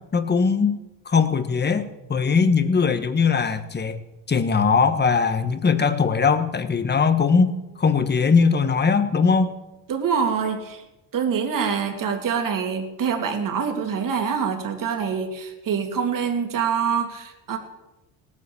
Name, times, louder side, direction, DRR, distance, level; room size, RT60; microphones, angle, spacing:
voice 1, 0.1-0.8 1.0-4.0 4.3-9.5, left 5 dB, 25° left, 11 dB, 1.4 m, -20 dB
voice 2, 9.9-10.8 11.1-17.6, right 6 dB, 50° right, 4 dB, 2.8 m, -25 dB
18.0 x 9.7 x 7.1 m, 1.0 s
cardioid pair, 100°, 41 cm